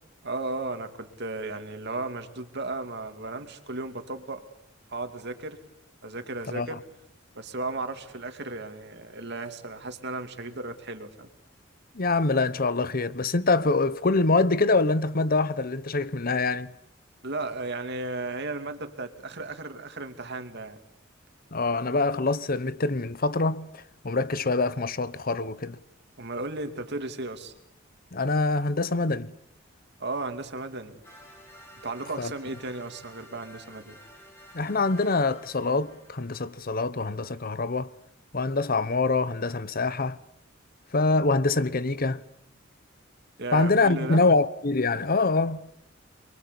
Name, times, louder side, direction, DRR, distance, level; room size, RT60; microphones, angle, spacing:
voice 1, 0.2-4.4 4.9-5.6 6.0-6.8 7.3-11.3 17.2-20.8 26.2-27.5 30.0-31.0 31.8-34.0 43.4-44.2, right 2 dB, 60° right, 2.7 m, -35 dB
voice 2, 11.9-16.7 21.5-23.7 24.0-25.8 28.1-29.3 32.2-32.3 34.5-37.9 38.3-40.2 40.9-42.2 43.5-45.6, left 3 dB, 50° left, 1.0 m, -25 dB
sound 1, 31.0-36.9, equal, 15° left, 4.0 m, -51 dB
28.0 x 23.5 x 8.5 m
head